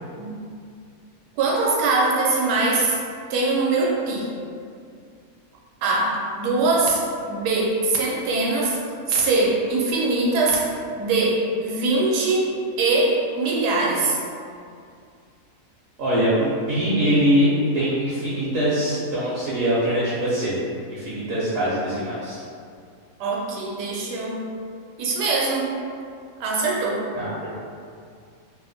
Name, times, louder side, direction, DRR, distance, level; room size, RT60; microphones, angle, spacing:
voice 1, 1.4-3.0 3.3-4.3 5.8-8.8 9.1-14.2 23.2-24.5 25.0-25.7 26.4-27.0, right 3 dB, 90° right, -3 dB, 1.1 m, -22 dB
voice 2, 16.0-17.5 17.7-20.5 20.9-22.4 27.1-27.5, equal, 65° right, -10 dB, 0.9 m, -22 dB
2.8 x 2.0 x 2.6 m, 2.3 s
omnidirectional pair, 1.7 m